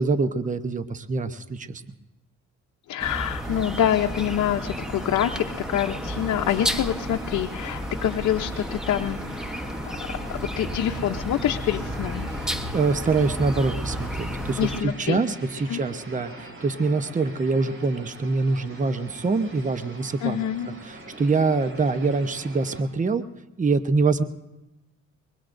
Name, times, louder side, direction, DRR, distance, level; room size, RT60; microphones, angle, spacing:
voice 1, 0.0-1.8 12.7-20.4 20.8-23.2 23.6-24.2, right 4 dB, 25° right, 9 dB, 0.9 m, -24 dB
voice 2, 2.9-9.2 9.5-9.7 10.3-12.3 14.6-15.2 15.7-15.8 20.2-20.7, left 10 dB, 65° left, 4 dB, 0.8 m, -26 dB
sound 1, 3.0-14.8, equal, ahead, 1.0 m, -32 dB
sound 2, 3.4-22.8, right 1 dB, 45° right, 4.3 m, -43 dB
24.0 x 22.5 x 2.6 m, 0.97 s
cardioid pair, 90°, 30 cm